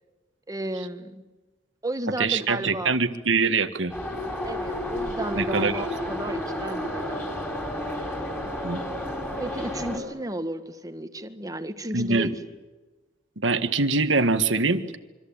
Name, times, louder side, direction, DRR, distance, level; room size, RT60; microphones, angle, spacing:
voice 1, 0.5-1.2 1.8-3.0 4.4-7.2 9.4-12.3, right 1 dB, 20° right, 9 dB, 1.8 m, -33 dB
voice 2, 2.2-3.9 5.3-5.8 8.6-8.8 11.9-12.3 13.4-15.0, right 4 dB, 80° right, 9 dB, 1.9 m, -23 dB
Subway metro underground, 3.9-10.0, left 1 dB, 10° left, 5.3 m, -31 dB
26.5 x 25.0 x 8.9 m, 1.2 s
head